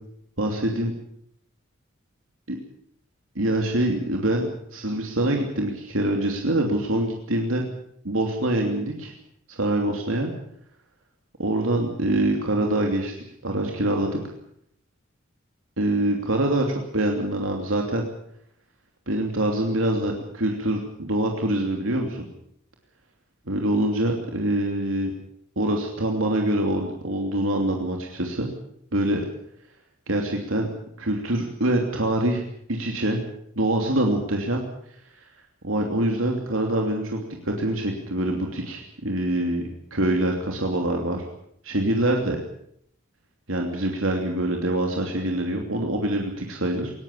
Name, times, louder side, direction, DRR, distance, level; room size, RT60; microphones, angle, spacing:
voice 1, 0.4-0.9 2.5-2.6 3.3-7.6 8.0-9.1 9.5-10.3 11.4-13.1 13.4-14.2 15.8-18.0 19.1-22.2 23.5-25.1 25.6-28.5 28.9-29.2 30.1-30.7 31.0-32.4 32.7-33.2 33.6-34.6 35.6-39.6 39.9-41.2 41.6-42.4 43.5-46.9, right 1 dB, 85° right, 2 dB, 2.9 m, -25 dB
20.0 x 17.5 x 8.5 m, 0.71 s
head